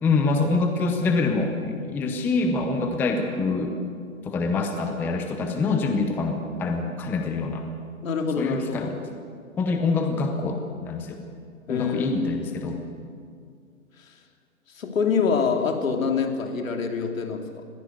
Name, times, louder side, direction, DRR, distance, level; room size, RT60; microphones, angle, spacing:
voice 1, 0.0-3.7 4.2-7.6 8.4-9.0 9.6-11.2 11.7-12.8, left 3 dB, 5° left, 5 dB, 0.6 m, -25 dB
voice 2, 8.0-9.0 11.7-13.1 14.7-17.6, left 5 dB, 70° left, 4 dB, 3.0 m, -26 dB
21.0 x 16.0 x 8.0 m, 2.2 s
hypercardioid pair, 140°, 42 cm